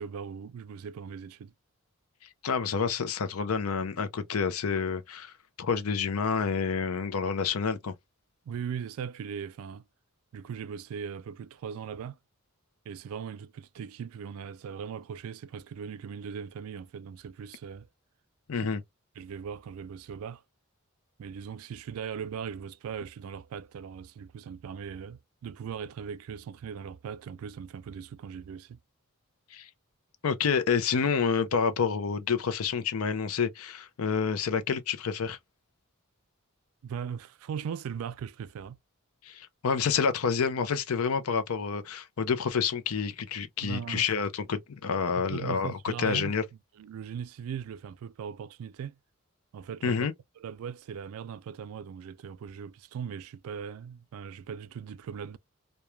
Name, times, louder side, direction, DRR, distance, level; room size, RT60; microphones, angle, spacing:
voice 1, 0.0-1.5 8.5-9.9 10.3-12.2 12.9-17.9 18.6-18.8 19.2-20.4 21.2-28.8 36.8-38.8 43.6-44.1 45.1-46.3 46.8-49.0 49.5-50.1 50.4-55.4, right 7 dB, 75° right, 0.3 m, -39 dB
voice 2, 2.4-5.3 5.6-7.9 18.5-18.8 29.5-29.7 30.2-35.4 39.2-46.4 49.8-50.1, left 6 dB, 75° left, 0.5 m, -28 dB
3.0 x 2.2 x 2.2 m
head